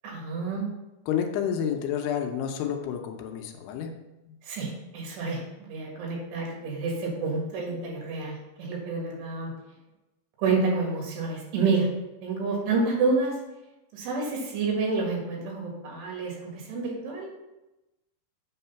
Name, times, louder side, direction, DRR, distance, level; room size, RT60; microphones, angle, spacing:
voice 1, 0.0-0.7 4.4-9.5 10.4-11.9 12.2-13.4 13.9-17.3, right 4 dB, 75° right, -1 dB, 3.8 m, -29 dB
voice 2, 1.1-3.9 4.3-4.4, left 8 dB, 80° left, 4 dB, 2.7 m, -29 dB
7.9 x 3.8 x 5.7 m, 0.99 s
omnidirectional pair, 4.8 m